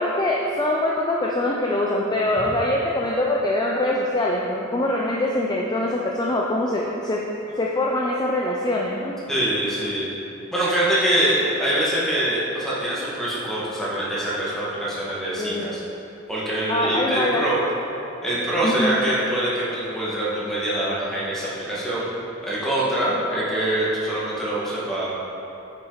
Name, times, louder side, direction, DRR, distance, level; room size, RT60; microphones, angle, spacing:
voice 1, 0.0-7.2 7.5-9.1 15.4-15.8 16.7-17.5 18.6-19.0, left 1 dB, 20° left, -2 dB, 0.5 m, -23 dB
voice 2, 9.3-10.1 10.5-15.8 16.3-17.6 18.2-22.1 22.4-25.1, right 1 dB, ahead, -9 dB, 1.8 m, -24 dB
9.3 x 5.7 x 4.0 m, 3.0 s
head